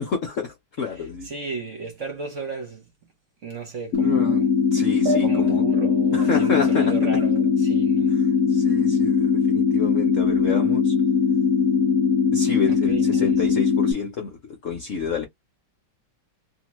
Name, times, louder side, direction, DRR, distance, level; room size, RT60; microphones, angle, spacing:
voice 1, 0.0-1.3 4.0-4.4 4.7-5.6 6.1-7.2 8.5-11.0 12.3-15.3, left 6 dB, 65° left, 0.8 m, -29 dB
voice 2, 1.0-2.9 3.4-4.5 5.2-8.1 12.7-13.4, right 4 dB, 50° right, 1.1 m, -35 dB
sound 1, 3.9-13.9, left 6 dB, 90° left, 0.7 m, -20 dB
sound 2, 5.1-8.0, right 2 dB, 75° right, 1.2 m, -34 dB
2.9 x 2.7 x 3.0 m
omnidirectional pair, 2.1 m